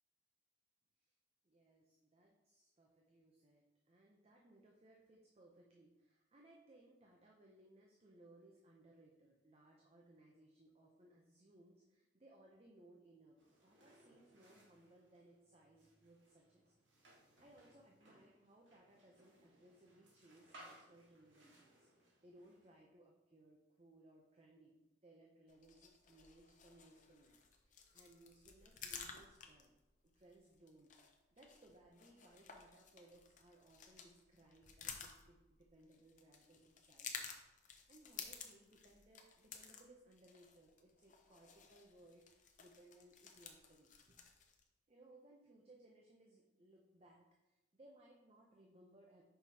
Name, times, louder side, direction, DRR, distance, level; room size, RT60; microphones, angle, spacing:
voice 1, 1.4-16.7 17.4-21.9 22.2-29.7 30.0-42.2 42.6-44.2 44.9-49.2, right 1 dB, 35° right, -1 dB, 0.7 m, -65 dB
sound 1, 13.4-22.8, right 1 dB, 85° right, 1.6 m, -65 dB
sound 2, 25.5-44.6, left 6 dB, 45° left, 0.7 m, -54 dB
5.7 x 4.7 x 4.2 m, 0.99 s
head